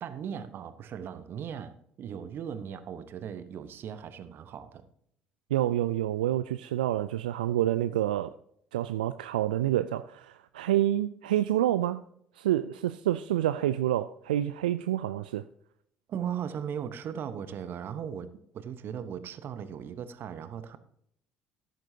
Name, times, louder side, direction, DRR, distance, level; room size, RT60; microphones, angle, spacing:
voice 1, 0.0-4.8 16.1-20.8, right 8 dB, 50° right, 1.1 m, -38 dB
voice 2, 5.5-8.3 8.7-12.0 12.4-15.4, right 13 dB, 80° right, 0.3 m, -28 dB
13.5 x 11.0 x 2.8 m
hypercardioid pair, 55°, 5 cm